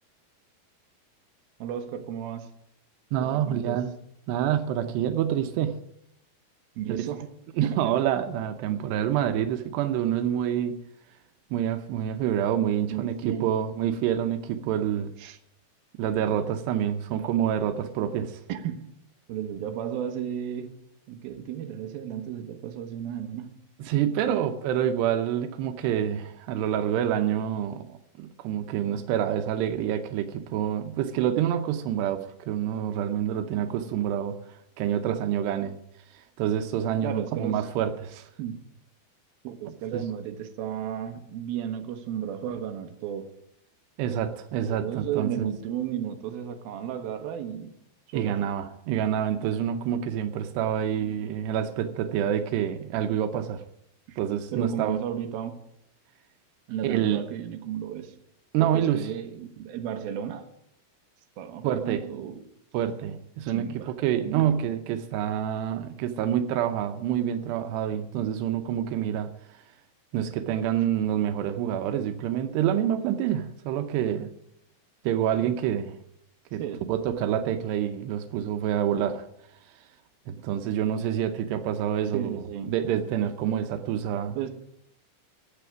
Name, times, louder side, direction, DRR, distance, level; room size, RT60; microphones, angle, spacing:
voice 1, 1.6-2.5 3.2-3.8 6.8-7.3 7.6-8.0 12.9-13.5 15.2-15.4 18.5-18.9 19.3-20.8 21.1-23.6 24.3-24.4 37.0-37.7 38.4-38.6 39.4-43.3 44.7-47.7 48.1-48.5 54.1-54.2 54.5-55.6 56.7-58.1 58.6-60.5 61.4-62.4 63.5-63.9 76.6-76.8 82.1-82.7 84.4-84.5, right 9 dB, 70° right, 2.8 m, -33 dB
voice 2, 3.1-3.9 4.3-5.8 7.0-7.1 7.6-10.8 11.5-15.1 16.0-18.4 23.8-35.8 36.4-38.3 39.9-40.0 44.0-45.5 48.1-53.6 54.2-55.0 56.8-57.2 58.5-59.1 61.6-62.1 62.7-69.3 70.1-74.3 75.0-76.0 76.5-79.2 80.3-84.4, right 10 dB, 85° right, 2.9 m, -27 dB
12.0 x 7.9 x 9.2 m
omnidirectional pair, 4.7 m